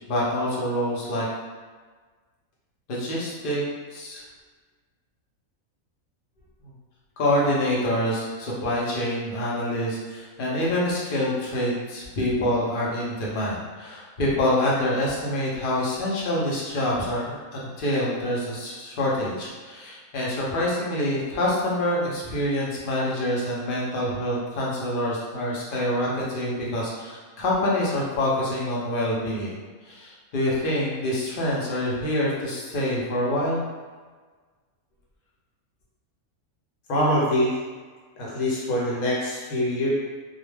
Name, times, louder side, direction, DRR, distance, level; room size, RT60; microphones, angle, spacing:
voice 1, 0.1-1.3 2.9-3.6 3.9-4.2 6.6-6.7 7.2-29.6 29.8-33.6, left 1 dB, 50° left, -5 dB, 0.6 m, -26 dB
voice 2, 36.9-37.6 38.2-39.9, left 1 dB, 80° left, -5 dB, 1.1 m, -24 dB
2.4 x 2.2 x 3.2 m, 1.4 s
omnidirectional pair, 1.5 m